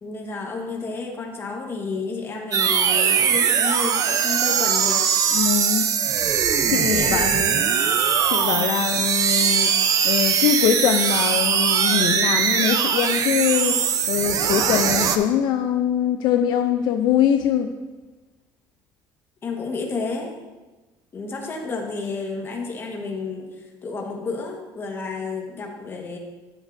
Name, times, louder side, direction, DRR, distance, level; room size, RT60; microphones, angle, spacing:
voice 1, 0.0-5.2 6.9-7.9 8.4-8.7 19.4-20.3 21.1-26.2, left 4 dB, 25° left, 0 dB, 1.3 m, -31 dB
sound 1, 2.5-15.2, right 7 dB, 40° right, 0.6 m, -21 dB
voice 2, 5.3-5.9 6.7-7.3 8.3-9.7 10.0-13.8 14.1-17.7, left 9 dB, 60° left, 6 dB, 0.4 m, -22 dB
11.5 x 7.3 x 2.6 m, 1.2 s
cardioid pair, 155°, 9 cm